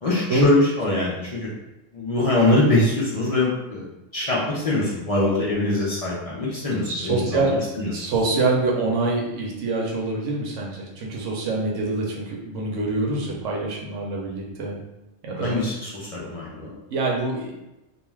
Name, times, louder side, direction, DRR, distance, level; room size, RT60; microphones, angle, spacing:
voice 1, 0.0-1.5 1.9-3.9 4.1-7.9 15.4-16.7, left 2 dB, 60° left, -6 dB, 0.3 m, -23 dB
voice 2, 6.8-7.6 7.9-14.8 15.2-15.6 16.9-17.5, right 3 dB, 75° right, -2 dB, 0.9 m, -25 dB
2.4 x 2.3 x 3.1 m, 0.96 s
omnidirectional pair, 1.3 m